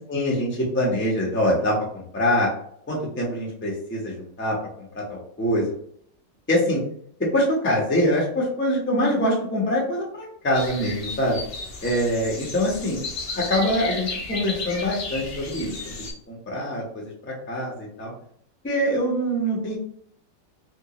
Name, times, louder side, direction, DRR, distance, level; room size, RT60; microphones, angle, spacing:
voice 1, 0.1-2.5 2.9-5.7 6.5-6.8 7.2-11.4 11.8-13.0 13.3-18.1 18.6-19.8, equal, 10° left, -3 dB, 0.6 m, -24 dB
sound 1, 10.5-16.1, left 3 dB, 50° left, 1.0 m, -33 dB
3.6 x 3.0 x 2.9 m, 0.64 s
omnidirectional pair, 1.9 m